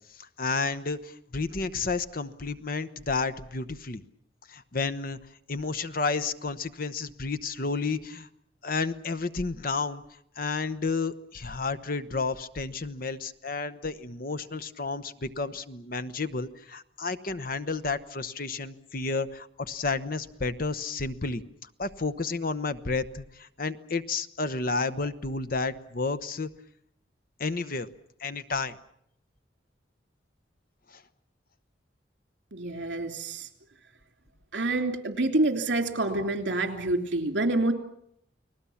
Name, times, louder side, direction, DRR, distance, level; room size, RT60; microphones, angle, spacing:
voice 1, 0.2-4.0 4.5-5.2 5.5-8.3 8.6-10.0 10.4-21.4 21.8-26.5 27.4-27.9 28.2-28.8 30.9-31.0, left 4 dB, 50° left, 13 dB, 1.0 m, -31 dB
voice 2, 32.5-33.5 34.5-37.7, right 2 dB, 70° right, 6 dB, 3.0 m, -27 dB
30.0 x 19.5 x 7.2 m, 0.74 s
head